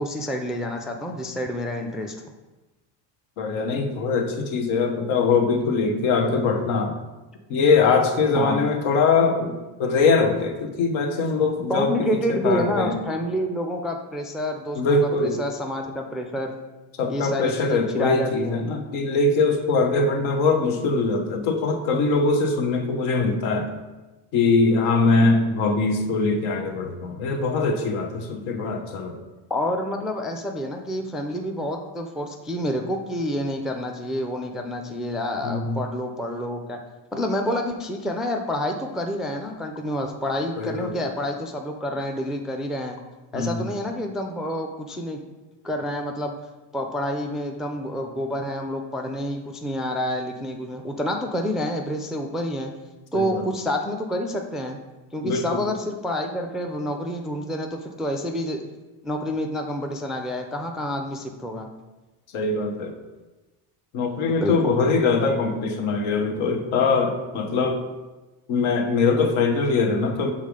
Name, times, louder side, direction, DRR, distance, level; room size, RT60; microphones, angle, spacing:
voice 1, 0.0-2.1 8.3-8.6 11.7-16.5 17.1-18.6 19.8-19.9 29.5-36.8 37.1-43.0 43.3-45.2 45.6-46.4 46.7-52.7 53.1-54.8 55.1-58.6 59.0-61.7 64.4-64.8, left 1 dB, ahead, 3 dB, 0.3 m, -28 dB
voice 2, 3.4-7.0 7.5-9.5 9.8-13.0 14.8-15.4 17.0-23.7 24.3-29.2 35.4-35.8 40.6-41.0 43.3-43.7 53.1-53.4 55.2-55.6 62.3-63.0 63.9-67.8 68.5-70.3, left 4 dB, 75° left, 4 dB, 1.0 m, -22 dB
5.6 x 3.6 x 4.9 m, 1.1 s
supercardioid pair, 95°, 48 cm